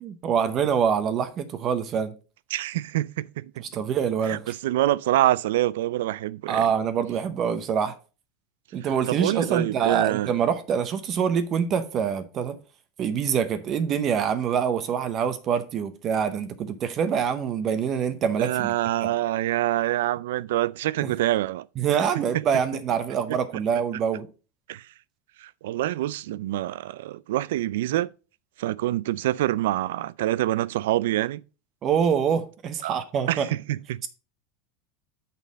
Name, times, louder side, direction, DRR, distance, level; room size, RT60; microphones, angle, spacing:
voice 1, 0.0-2.2 3.6-4.5 6.5-7.9 8.7-12.6 13.0-18.7 19.0-19.1 21.0-21.1 21.8-24.3 31.8-33.5, right 7 dB, 30° right, 0.7 m, -25 dB
voice 2, 2.5-3.5 4.3-6.6 8.8-10.3 18.4-21.7 22.3-22.4 24.7-24.8 25.4-28.1 28.6-31.4 32.8-33.0 33.3-34.1, right 14 dB, 85° right, 0.3 m, -26 dB
6.4 x 5.4 x 5.1 m
supercardioid pair, 155°, 0 cm